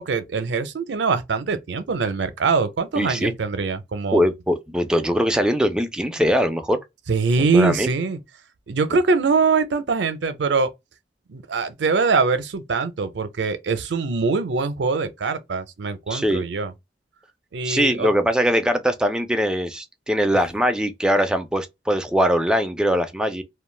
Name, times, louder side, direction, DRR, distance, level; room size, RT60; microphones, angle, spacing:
voice 1, 0.0-4.3 7.1-8.2 8.7-10.7 11.3-16.7 17.5-18.1, right 4 dB, 85° right, 0.5 m, -23 dB
voice 2, 3.0-3.3 4.1-6.8 7.5-7.9 16.1-16.5 17.6-23.4, equal, 5° right, 0.3 m, -21 dB
2.3 x 2.1 x 3.1 m
head